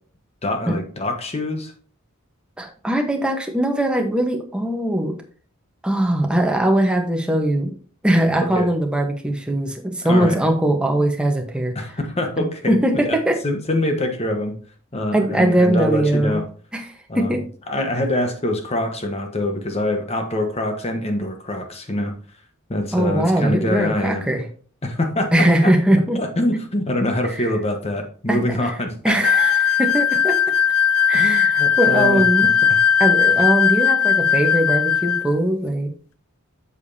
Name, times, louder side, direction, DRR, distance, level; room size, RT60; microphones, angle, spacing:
voice 1, 0.4-1.7 8.4-8.7 10.0-10.4 11.7-12.8 13.1-13.2 13.4-14.5 14.9-16.4 17.1-17.4 17.7-22.1 22.7-24.2 24.8-25.7 26.1-29.2 31.1-32.8, left 1 dB, 30° left, 5 dB, 1.1 m, -24 dB
voice 2, 2.6-5.1 5.8-7.7 8.0-11.8 12.7-13.4 15.1-16.4 16.7-16.9 17.1-17.4 22.9-24.4 25.3-26.2 27.4-27.5 28.3-28.7 29.0-30.3 31.1-32.5 33.0-35.9, right 1 dB, 5° right, 3 dB, 1.0 m, -20 dB
sound 1, 29.2-35.3, left 8 dB, 80° left, 0.6 m, -18 dB
8.1 x 6.8 x 2.7 m, 0.43 s
head